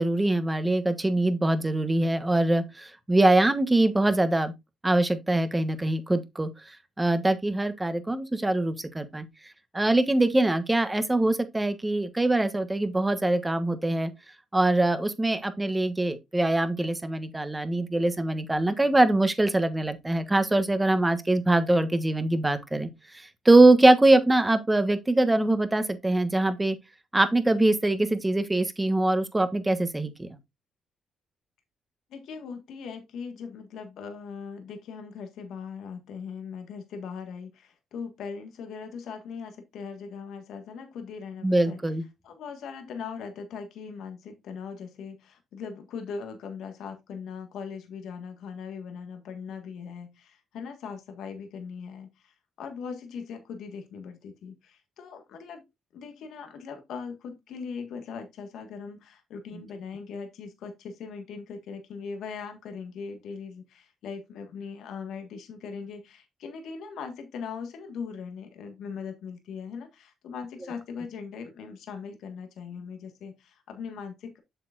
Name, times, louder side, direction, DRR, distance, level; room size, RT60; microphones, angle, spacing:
voice 1, 0.0-4.5 4.8-9.3 9.7-14.1 14.5-26.8 27.1-30.3 41.4-42.0, right 2 dB, 15° right, 1.2 m, -23 dB
voice 2, 32.1-41.8 42.2-55.6 55.9-74.4, left 5 dB, 80° left, 1.6 m, -40 dB
7.9 x 6.9 x 2.5 m
cardioid pair, 90°, 0 cm